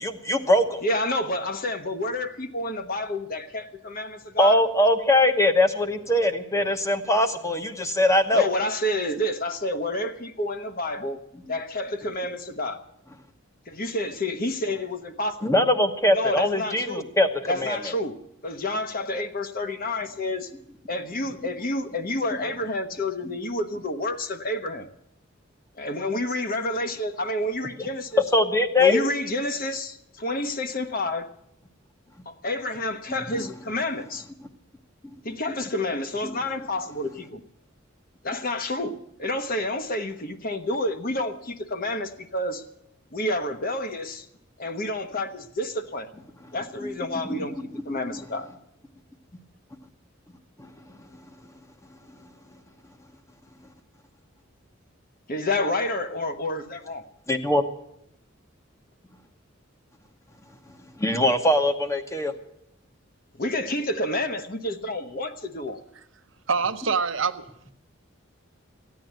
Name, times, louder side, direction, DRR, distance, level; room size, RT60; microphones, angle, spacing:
voice 1, 0.0-0.8 4.4-8.5 15.4-17.3 17.6-17.8 27.8-27.9 28.3-29.1 35.3-35.4 36.2-36.3 46.8-46.9 47.2-47.5 47.9-48.2 57.3-57.6 61.0-62.3, left 1 dB, 15° left, 7 dB, 1.1 m, -22 dB
voice 2, 0.8-4.6 8.3-11.2 11.5-12.8 13.7-15.4 16.1-17.1 17.5-18.1 18.4-20.5 20.9-24.9 25.8-28.2 28.8-31.3 32.3-34.2 35.2-37.4 38.2-42.6 43.1-44.2 44.6-46.1 46.5-47.5 47.8-48.5 55.3-57.0 63.4-65.8, left 1 dB, 45° left, 8 dB, 1.1 m, -29 dB
voice 3, 66.5-67.7, right 5 dB, 70° right, 9 dB, 0.8 m, -26 dB
14.5 x 9.4 x 9.2 m, 0.77 s
head